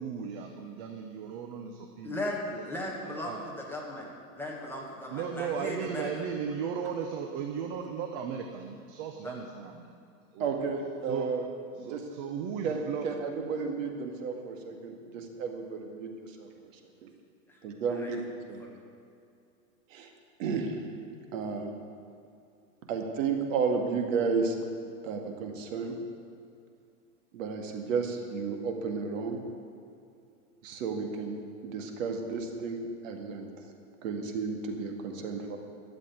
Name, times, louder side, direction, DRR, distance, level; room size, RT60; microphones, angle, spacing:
voice 1, 0.0-2.2 2.5-3.4 5.1-9.9 10.3-10.5 11.1-11.3 11.8-13.1, right 7 dB, 35° right, 4 dB, 0.9 m, -36 dB
voice 2, 2.0-6.2 9.2-9.4 17.5-18.1 18.6-18.8, left 1 dB, 5° left, -3 dB, 1.5 m, -38 dB
voice 3, 10.4-11.4 11.8-12.0 12.6-16.7 17.0-17.1 17.6-18.2 18.5-18.6 19.9-20.1 20.4-20.9 21.3-21.7 22.9-24.5 25.0-26.0 27.3-29.4 30.6-33.5 34.0-35.6, right 5 dB, 55° right, 3 dB, 2.1 m, -32 dB
12.5 x 7.6 x 9.3 m, 2.5 s
supercardioid pair, 155°, 45 cm